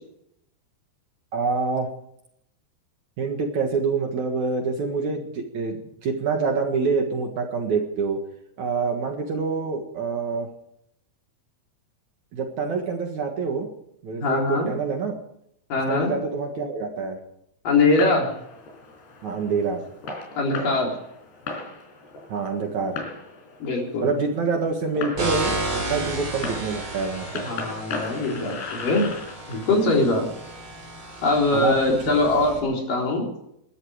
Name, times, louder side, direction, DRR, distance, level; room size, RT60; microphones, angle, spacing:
voice 1, 1.3-1.9 3.2-8.2 8.6-10.5 12.3-13.7 14.0-15.2 15.9-17.2 19.2-19.8 22.3-23.0 24.0-27.4 31.5-32.2, right 4 dB, 55° right, 3 dB, 2.6 m, -26 dB
voice 2, 14.2-14.7 15.7-16.1 17.7-18.3 20.4-20.9 23.6-24.1 27.4-29.1 29.5-30.3 31.2-33.3, left 2 dB, 55° left, 0 dB, 5.4 m, -22 dB
Fireworks, 17.7-32.5, left 3 dB, 85° left, 6.4 m, -38 dB
sound 1, 25.2-32.6, right 2 dB, 30° right, 4.3 m, -33 dB
21.5 x 13.5 x 5.0 m, 0.76 s
omnidirectional pair, 4.7 m